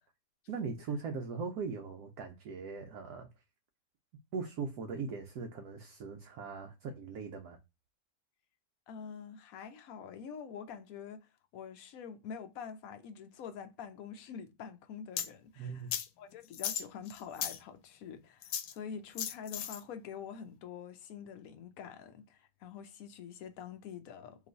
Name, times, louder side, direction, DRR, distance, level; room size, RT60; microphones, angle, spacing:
voice 1, 0.5-3.3 4.3-7.6 15.6-15.9, right 5 dB, 70° right, 1.0 m, -40 dB
voice 2, 8.9-15.9 16.2-24.5, left 7 dB, 65° left, 0.9 m, -46 dB
sound 1, 15.2-15.3 15.9-16.1 16.5-17.6 18.4-18.7 19.2-19.8, left 10 dB, 85° left, 1.2 m, -36 dB
3.2 x 3.0 x 3.8 m
omnidirectional pair, 1.9 m